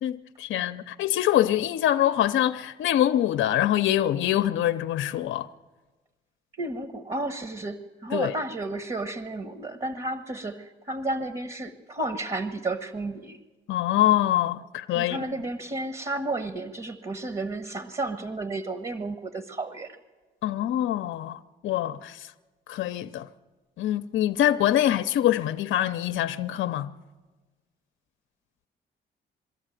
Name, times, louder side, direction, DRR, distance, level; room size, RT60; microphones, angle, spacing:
voice 1, 0.0-5.5 8.1-8.3 13.7-15.2 20.4-22.3 22.7-23.3 23.8-26.9, left 12 dB, 75° left, 0.6 m, -24 dB
voice 2, 6.6-13.4 14.9-20.0, right 2 dB, 30° right, 1.3 m, -32 dB
23.0 x 13.5 x 9.0 m
cardioid pair, 90°, 20 cm